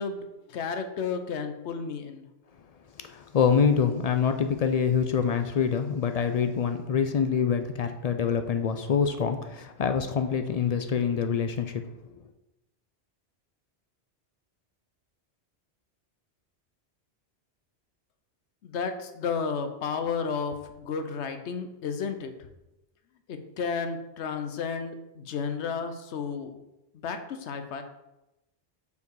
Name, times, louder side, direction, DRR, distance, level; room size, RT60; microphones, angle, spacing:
voice 1, 0.0-2.3 18.6-22.3 23.3-26.6 27.0-27.8, left 5 dB, 85° left, 8 dB, 1.0 m, -32 dB
voice 2, 3.0-11.8, left 6 dB, 60° left, 7 dB, 0.4 m, -25 dB
5.4 x 4.7 x 4.7 m, 0.96 s
omnidirectional pair, 1.1 m